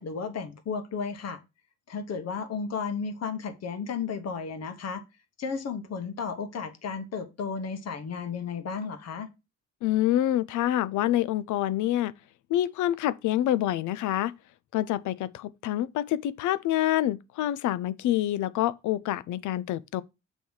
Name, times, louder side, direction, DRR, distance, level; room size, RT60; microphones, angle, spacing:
voice 1, 0.0-1.4 1.9-5.0 5.4-9.3, left 5 dB, 60° left, 1.1 m, -33 dB
voice 2, 9.8-12.1 12.5-14.3 14.7-20.0, left 13 dB, 75° left, 0.5 m, -27 dB
6.2 x 3.1 x 5.4 m
cardioid pair, 90°, 30 cm